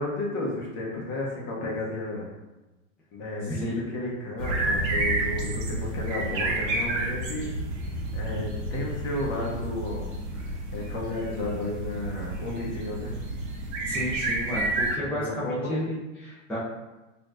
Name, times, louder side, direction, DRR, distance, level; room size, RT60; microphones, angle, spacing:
voice 1, 0.0-2.3 3.1-7.5 8.1-13.2 15.0-15.7, left 2 dB, 30° left, -2 dB, 1.0 m, -33 dB
voice 2, 3.5-3.9 13.8-16.6, equal, 5° left, -10 dB, 0.5 m, -32 dB
sound 1, 4.4-15.0, right 2 dB, 40° right, 0.8 m, -30 dB
4.4 x 2.6 x 2.6 m, 1.1 s
hypercardioid pair, 130°, 39 cm